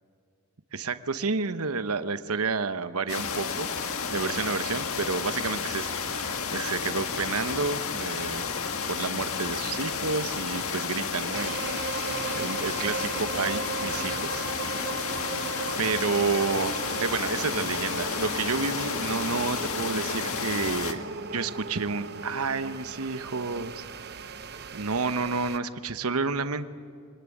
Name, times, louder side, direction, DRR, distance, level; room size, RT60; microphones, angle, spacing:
voice 1, 0.7-3.7 4.1-6.0 6.5-8.4 8.9-12.0 12.3-14.5 15.8-21.0 21.3-23.8 24.7-26.7, right 4 dB, 85° right, 11 dB, 1.0 m, -30 dB
sound 1, 3.1-20.9, left 5 dB, 75° left, 1.7 m, -31 dB
sound 2, 11.3-25.6, right 4 dB, 50° right, 0.9 m, -37 dB
25.0 x 19.5 x 10.0 m, 2.3 s
head